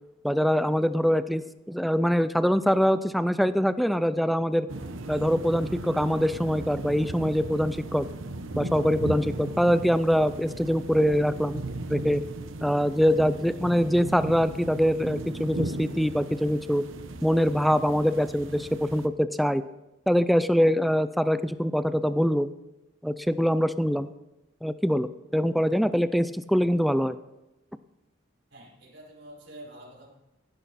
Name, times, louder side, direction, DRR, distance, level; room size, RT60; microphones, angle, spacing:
voice 1, 0.2-4.7 5.1-8.0 8.5-11.6 11.9-12.2 12.6-16.8 17.2-19.6 20.1-22.5 23.0-24.1 24.6-27.2, equal, ahead, 13 dB, 0.4 m, -24 dB
sound 1, 4.7-19.1, right 2 dB, 80° right, 1.0 m, -37 dB
voice 2, 28.5-30.1, right 1 dB, 60° right, -3 dB, 5.3 m, -47 dB
16.0 x 11.0 x 4.2 m, 0.95 s
head